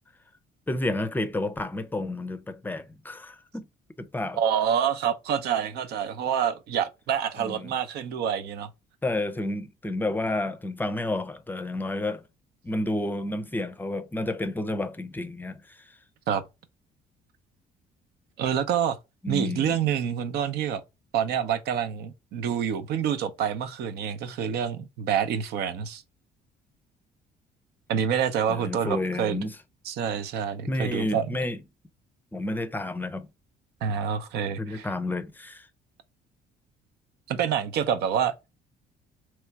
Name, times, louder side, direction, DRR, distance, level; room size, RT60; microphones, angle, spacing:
voice 1, 0.7-3.7 4.0-4.4 7.4-7.7 9.0-12.2 12.6-15.6 19.2-19.8 28.5-29.6 30.7-31.6 32.3-33.3 34.6-35.7, left 2 dB, 10° left, 0.5 m, -30 dB
voice 2, 4.3-8.7 16.3-16.4 18.4-19.0 19.3-20.8 21.1-26.0 27.9-29.4 29.8-31.3 33.8-34.9 37.3-38.3, right 8 dB, 75° right, 0.7 m, -27 dB
3.3 x 3.1 x 4.6 m
cardioid pair, 110°, 17 cm